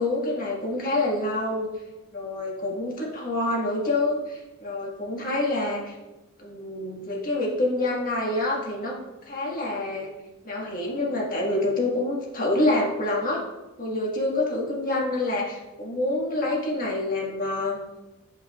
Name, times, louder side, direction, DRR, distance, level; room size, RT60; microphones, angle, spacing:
voice 1, 0.0-1.7 2.1-5.9 6.4-9.0 9.3-10.1 10.4-13.4 13.8-17.8, left 2 dB, 45° left, -3 dB, 1.5 m, -27 dB
8.4 x 4.8 x 2.3 m, 1.1 s
head